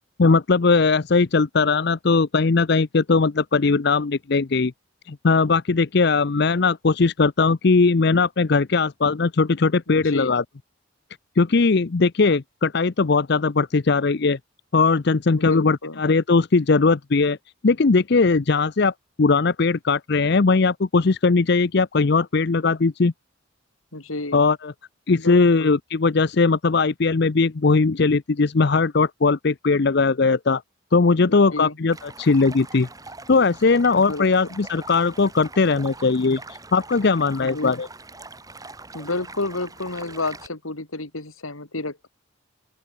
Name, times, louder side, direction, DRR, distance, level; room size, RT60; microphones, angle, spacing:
voice 1, 0.2-4.7 5.1-10.4 11.4-14.4 14.7-17.4 17.6-23.1 24.3-24.7 25.1-30.6 30.9-32.9 33.3-37.9, left 4 dB, 55° left, 0.6 m, -19 dB
voice 2, 9.9-10.4 15.4-16.0 23.9-24.4 25.2-25.7 31.2-31.8 34.0-34.6 37.4-37.8 38.9-42.1, left 2 dB, 85° left, 3.2 m, -31 dB
Stream, 31.9-40.5, right 3 dB, 15° right, 6.9 m, -42 dB
open air
head